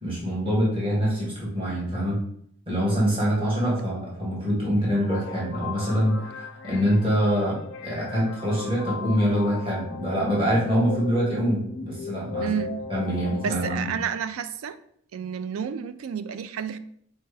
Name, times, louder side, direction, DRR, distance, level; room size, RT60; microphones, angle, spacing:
voice 1, 0.0-2.2 2.7-7.6 7.8-12.6 12.9-13.9, equal, 25° right, -6 dB, 1.7 m, -25 dB
sound 1, 5.0-13.7, left 5 dB, 65° left, 0.4 m, -37 dB
voice 2, 12.4-12.8 13.4-14.8 15.1-16.8, right 7 dB, 75° right, 12 dB, 0.4 m, -30 dB
4.5 x 3.4 x 3.3 m, 0.65 s
head